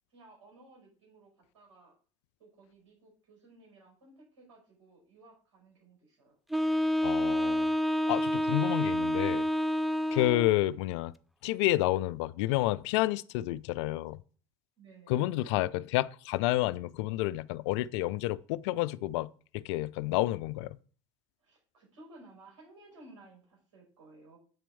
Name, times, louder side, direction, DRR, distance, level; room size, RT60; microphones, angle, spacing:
voice 1, 0.1-1.9 2.4-6.4 10.2-10.5 14.8-15.2 21.4-24.4, right 2 dB, 75° right, 5.4 m, -57 dB
Wind instrument woodwind instrument, 6.5-10.6, equal, ahead, 0.5 m, -28 dB
voice 2, 7.0-7.7 8.1-9.5 10.1-11.1 11.4-14.2 15.1-20.8, left 16 dB, 65° left, 0.4 m, -30 dB
7.9 x 4.4 x 6.9 m
hypercardioid pair, 65°, 16 cm